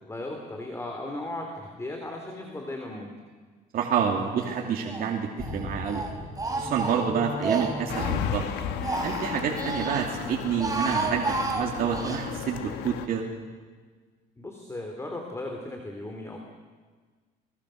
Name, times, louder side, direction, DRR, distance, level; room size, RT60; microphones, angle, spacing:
voice 1, 0.0-3.1 14.4-16.4, left 1 dB, 15° left, 3 dB, 3.2 m, -36 dB
voice 2, 3.7-6.0 6.5-8.5 9.0-13.3, right 7 dB, 60° right, -1 dB, 2.7 m, -28 dB
Speech, 4.4-5.1 5.4-8.2 8.6-10.1 10.5-12.2, right 3 dB, 20° right, 4.1 m, -32 dB
sound 1, 5.4-9.8, left 3 dB, 50° left, 7.1 m, -39 dB
sound 2, 7.9-13.1, left 9 dB, 85° left, 1.5 m, -34 dB
28.5 x 20.5 x 6.6 m, 1.5 s
cardioid pair, 110°, 17 cm